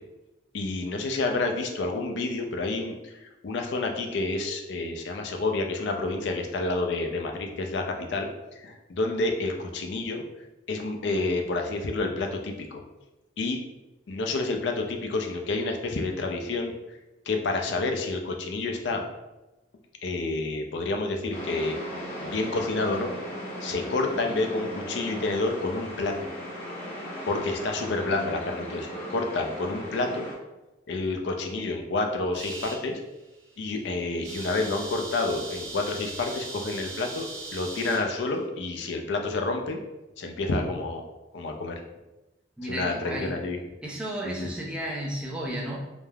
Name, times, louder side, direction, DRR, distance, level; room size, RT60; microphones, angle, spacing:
voice 1, 0.5-10.2 10.7-12.8 13.4-13.6 14.1-16.7 17.3-19.0 20.0-21.8 22.2-23.2 23.6-26.1 27.3-30.3 30.9-33.0 33.6-37.3 37.5-39.8 40.2-41.0 41.3-41.7 42.6-43.6 44.2-44.5, left 3 dB, 65° left, 3 dB, 0.4 m, -29 dB
sound 1, 21.3-30.3, equal, 30° left, 0.7 m, -37 dB
sound 2, 32.3-32.8 33.3-33.5 33.8-33.9 34.1-38.0, right 3 dB, 75° right, 0.9 m, -39 dB
voice 2, 42.6-43.3 43.8-45.8, right 1 dB, 5° right, -4 dB, 0.4 m, -33 dB
3.1 x 2.0 x 2.2 m, 1.0 s
head